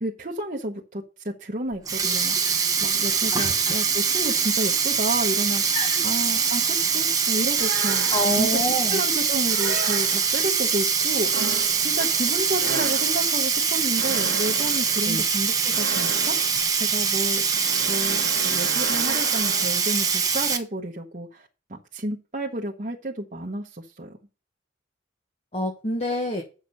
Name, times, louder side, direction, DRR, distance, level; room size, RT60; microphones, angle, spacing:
voice 1, 0.0-2.6 2.8-5.6 6.0-8.1 8.3-8.6 8.9-11.5 11.8-17.4 17.9-24.2, right 1 dB, 40° right, -1 dB, 1.0 m, -31 dB
Sink (filling or washing), 1.7-20.6, right 6 dB, 20° right, 1.0 m, -23 dB
voice 2, 5.7-6.0 8.1-9.0 12.0-12.1 15.1-15.2 25.5-26.4, equal, 35° left, 1 dB, 1.2 m, -27 dB
sound 1, 7.6-8.7 9.5-10.5 11.3-20.0, right 4 dB, 70° right, 1.2 m, -35 dB
8.1 x 6.4 x 5.4 m, 0.33 s
head